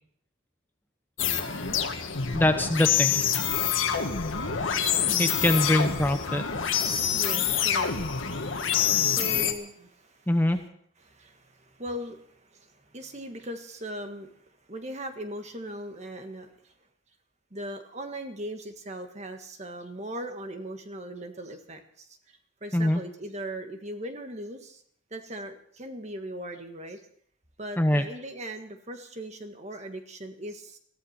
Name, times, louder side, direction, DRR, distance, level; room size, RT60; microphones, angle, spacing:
sound 1, 1.2-9.5, left 8 dB, 85° left, 1.8 m, -26 dB
voice 1, 2.3-3.2 5.2-6.4 10.3-10.6 22.7-23.0 27.8-28.1, left 1 dB, 10° left, 7 dB, 0.9 m, -23 dB
voice 2, 5.6-10.6 11.0-14.4 14.7-16.7 17.5-24.8 25.1-27.0 27.6-30.8, right 1 dB, 35° right, 6 dB, 1.6 m, -40 dB
21.5 x 15.0 x 4.4 m, 0.62 s
head